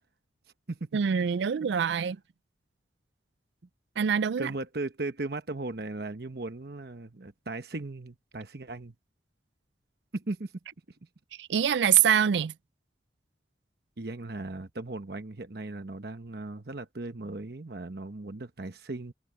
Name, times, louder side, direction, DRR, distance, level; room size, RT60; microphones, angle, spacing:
voice 1, 0.9-2.2 4.0-4.5 11.4-12.5, right 8 dB, 75° right, 0.4 m, -24 dB
voice 2, 4.4-8.9 10.1-10.5 14.0-19.1, right 2 dB, 60° right, 1.0 m, -37 dB
head